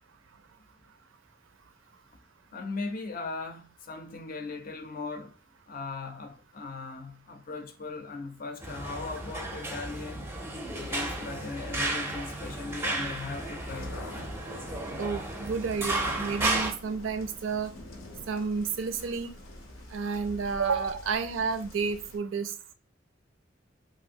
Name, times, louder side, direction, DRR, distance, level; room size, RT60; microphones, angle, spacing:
voice 1, 2.5-10.3 10.7-14.0, left 3 dB, 45° left, 0.5 m, -38 dB
sound 1, 8.6-16.7, right 2 dB, 10° right, 0.5 m, -33 dB
sound 2, 10.7-22.2, left 1 dB, 90° left, 0.6 m, -47 dB
voice 2, 15.0-17.7 18.3-19.3 19.9-22.7, right 5 dB, 80° right, 0.4 m, -31 dB
3.0 x 2.5 x 2.6 m
head